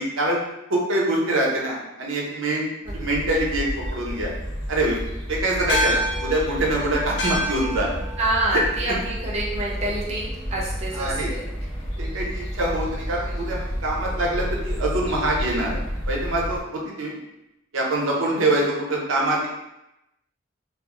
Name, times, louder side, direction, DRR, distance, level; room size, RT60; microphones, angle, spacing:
voice 1, 0.0-4.3 4.7-5.0 5.3-8.0 10.9-11.3 12.0-15.8 16.1-17.2 17.7-19.5, right 1 dB, 80° right, -2 dB, 0.7 m, -24 dB
sound 1, 2.8-16.6, equal, 25° left, 0.9 m, -31 dB
sound 2, 5.7-10.4, left 1 dB, 55° left, 0.5 m, -30 dB
voice 2, 8.2-11.5 18.1-18.4, right 1 dB, 35° right, -4 dB, 0.5 m, -27 dB
2.4 x 2.0 x 3.6 m, 0.89 s
head